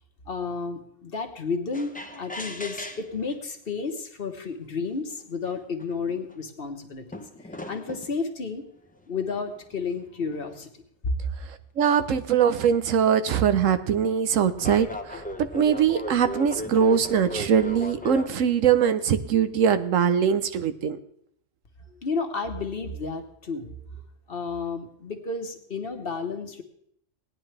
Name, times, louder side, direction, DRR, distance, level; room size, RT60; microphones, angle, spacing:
voice 1, 0.3-8.6 9.1-11.2 22.0-23.8 24.3-26.6, left 4 dB, 50° left, 6 dB, 1.3 m, -32 dB
sound 1, 1.7-3.3 4.3-4.4 5.1-5.2 5.5-6.3 7.1-8.2 9.1-10.7 13.3-13.5 14.5-18.4, equal, 10° left, 0.7 m, -37 dB
voice 2, 11.8-21.0, right 7 dB, 85° right, 11 dB, 1.2 m, -22 dB
17.5 x 10.0 x 3.3 m, 0.68 s
omnidirectional pair, 1.3 m